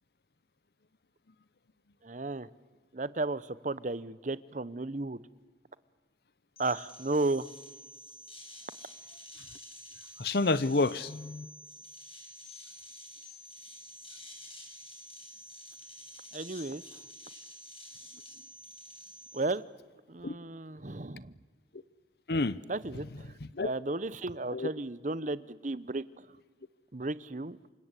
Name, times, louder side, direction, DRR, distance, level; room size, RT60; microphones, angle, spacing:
voice 1, 2.0-2.5 2.9-5.2 6.6-7.5 16.3-17.0 19.3-19.6 20.1-21.3 22.7-23.3 23.6-26.4 26.9-27.6, right 2 dB, 45° right, 0.9 m, -34 dB
sound 1, 6.6-19.4, left 1 dB, 30° left, 7.2 m, -49 dB
voice 2, 10.2-11.5 20.2-20.4 22.3-22.6 23.5-23.7 24.5-24.7, left 3 dB, 60° left, 0.8 m, -29 dB
28.5 x 25.5 x 8.3 m
head